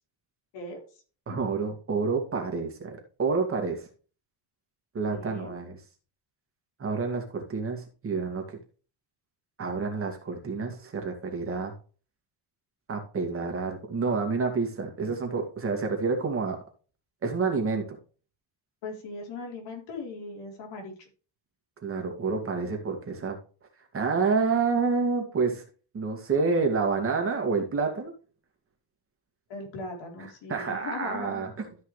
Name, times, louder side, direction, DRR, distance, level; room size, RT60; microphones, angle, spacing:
voice 1, 0.5-1.0 1.3-1.4 5.1-5.5 18.8-21.1 29.5-31.5, left 3 dB, 80° left, 0 dB, 4.2 m, -39 dB
voice 2, 1.3-3.9 4.9-5.8 6.8-8.6 9.6-11.7 12.9-16.6 17.2-18.0 21.8-23.4 23.9-25.6 25.9-28.1 30.5-31.7, right 4 dB, 30° right, 3 dB, 2.2 m, -28 dB
13.5 x 5.5 x 3.3 m, 0.37 s
cardioid pair, 165°, 43 cm